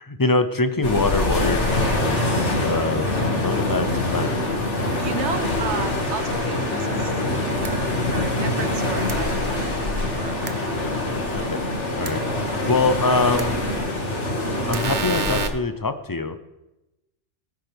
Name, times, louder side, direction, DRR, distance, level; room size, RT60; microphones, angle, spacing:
voice 1, 0.0-3.1 3.4-4.4 11.3-11.6 12.0-12.2 12.7-13.6 14.7-16.4, left 3 dB, 25° left, 10 dB, 0.4 m, -24 dB
sound 1, 0.8-15.4, left 2 dB, 80° left, 2.4 m, -24 dB
voice 2, 5.0-7.2 7.6-10.7, right 5 dB, 70° right, 8 dB, 1.3 m, -33 dB
sound 2, 7.6-7.7 9.1-9.2 10.5-10.6 12.1-12.2 13.4-13.5 14.7-15.5, right 5 dB, 50° right, 0.8 m, -28 dB
19.0 x 10.0 x 3.4 m, 0.98 s
omnidirectional pair, 1.2 m